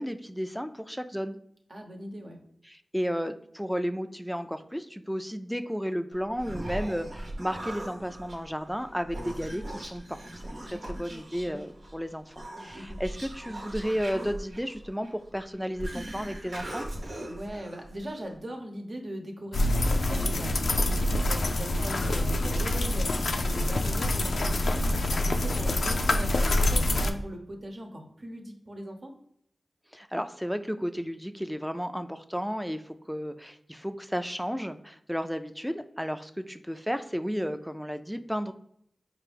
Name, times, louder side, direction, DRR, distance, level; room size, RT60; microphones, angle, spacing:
voice 1, 0.0-1.4 2.7-16.9 29.9-38.5, equal, ahead, 9 dB, 0.4 m, -33 dB
voice 2, 1.7-2.4 10.6-11.6 12.7-13.0 17.3-29.1, right 1 dB, 60° right, 2 dB, 0.9 m, -40 dB
Human voice, 6.1-18.4, right 1 dB, 85° right, 1.0 m, -40 dB
sound 1, 19.5-27.1, left 1 dB, 80° left, 0.4 m, -26 dB
4.6 x 2.5 x 3.3 m, 0.71 s
cardioid pair, 40°, 0 cm